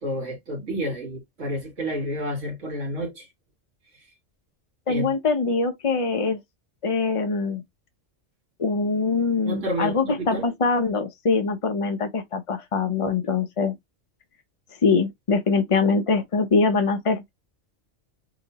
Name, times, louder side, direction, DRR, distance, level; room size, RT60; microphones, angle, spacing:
voice 1, 0.0-3.3 4.9-5.1 9.5-10.4, equal, 75° right, 2.0 m, -30 dB
voice 2, 4.9-6.4 6.8-7.6 8.6-13.7 14.8-17.3, left 4 dB, 45° left, 0.4 m, -23 dB
3.9 x 3.0 x 2.7 m
omnidirectional pair, 1.3 m